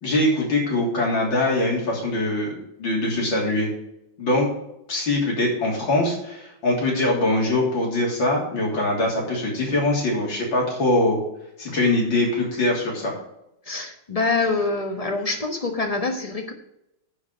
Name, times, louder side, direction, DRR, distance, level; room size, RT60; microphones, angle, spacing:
voice 1, 0.0-3.7 4.2-4.5 4.9-11.2 11.6-13.1, left 2 dB, 75° left, -3 dB, 4.0 m, -22 dB
voice 2, 13.7-16.5, left 3 dB, 20° left, 4 dB, 1.1 m, -25 dB
9.9 x 4.9 x 6.8 m, 0.83 s
omnidirectional pair, 2.1 m